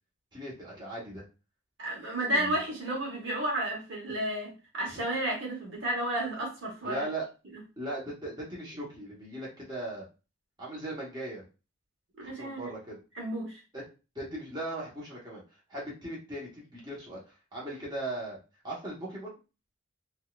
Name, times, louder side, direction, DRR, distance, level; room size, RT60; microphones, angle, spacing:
voice 1, 0.3-1.2 2.3-2.6 4.1-4.2 4.9-5.0 6.8-7.3 7.8-10.0 10.6-11.4 12.2-13.0 13.7-13.8 14.1-17.2 17.5-18.4 18.6-19.4, right 1 dB, 20° right, -5 dB, 1.1 m, -38 dB
voice 2, 1.8-7.1 12.2-12.7 13.1-13.6, right 1 dB, 60° right, -1 dB, 1.1 m, -32 dB
3.9 x 2.4 x 2.4 m, 0.31 s
head